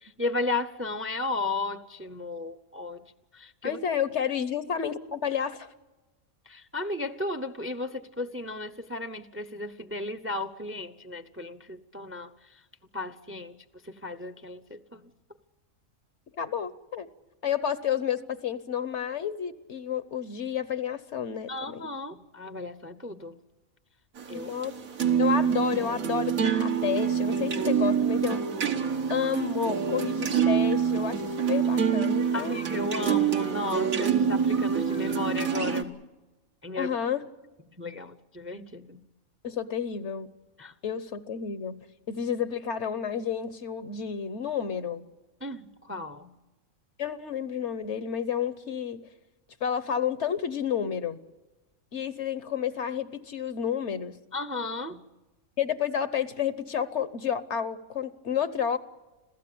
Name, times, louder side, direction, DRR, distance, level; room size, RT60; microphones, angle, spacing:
voice 1, 0.0-3.0 3.3-3.8 6.5-12.3 12.9-13.6 13.8-15.1 21.5-23.4 24.3-24.5 32.3-36.0 36.6-36.9 37.8-39.0 40.6-40.7 45.4-46.3 54.3-55.0, left 2 dB, 15° right, 11 dB, 0.6 m, -34 dB
voice 2, 3.6-5.7 16.4-17.1 17.4-21.9 24.3-24.7 25.2-28.4 29.1-32.6 36.8-37.3 39.4-40.3 40.8-41.8 42.1-45.1 47.0-49.1 49.6-51.2 51.9-54.2 55.6-58.8, left 8 dB, 60° left, 14 dB, 1.2 m, -30 dB
sound 1, 24.2-35.8, right 7 dB, 80° right, 1.9 m, -26 dB
26.5 x 15.5 x 8.6 m, 1.1 s
omnidirectional pair, 1.4 m